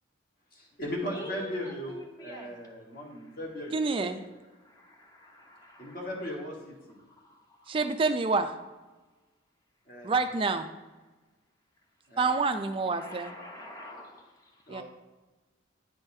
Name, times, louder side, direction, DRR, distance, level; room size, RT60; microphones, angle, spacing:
voice 1, 0.5-4.2 5.8-6.7 9.9-10.1 12.1-12.4 14.7-14.8, left 1 dB, 45° left, -2 dB, 1.3 m, -37 dB
voice 2, 1.1-2.5 2.9-3.4 4.5-6.4 7.1-7.7 12.9-14.8, equal, 20° left, 1 dB, 0.7 m, -47 dB
voice 3, 3.7-4.2 7.7-8.6 10.0-10.7 12.2-13.3 14.7-14.8, right 4 dB, 25° right, 7 dB, 0.3 m, -27 dB
9.7 x 3.9 x 2.6 m, 1.2 s
head